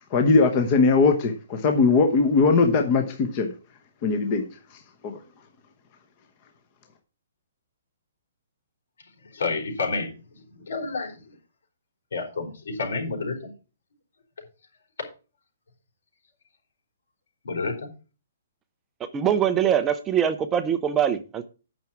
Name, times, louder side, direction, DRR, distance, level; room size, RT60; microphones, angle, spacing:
voice 1, 0.1-3.5 4.0-4.4 5.0-5.2, left 4 dB, 25° left, 5 dB, 1.0 m, -20 dB
voice 2, 9.3-10.2 10.5-11.2 12.1-13.5 17.4-17.9, left 3 dB, 75° left, 3 dB, 4.4 m, -29 dB
voice 3, 19.1-21.5, right 9 dB, 10° right, 10 dB, 0.5 m, -23 dB
9.3 x 6.0 x 5.7 m, 0.33 s
hypercardioid pair, 175°, 0 cm